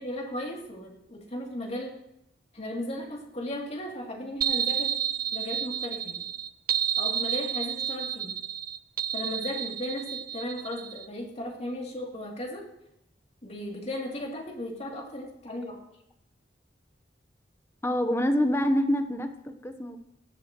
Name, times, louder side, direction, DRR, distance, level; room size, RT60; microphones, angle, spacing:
voice 1, 0.0-1.9 2.5-4.9 5.3-6.2 7.0-8.4 9.1-12.7 13.4-15.8, left 1 dB, 40° left, -1 dB, 3.0 m, -36 dB
sound 1, 4.4-11.1, right 9 dB, 55° right, 0.5 m, -30 dB
voice 2, 17.8-20.1, equal, 15° left, 7 dB, 1.0 m, -26 dB
17.5 x 12.5 x 3.1 m, 0.80 s
head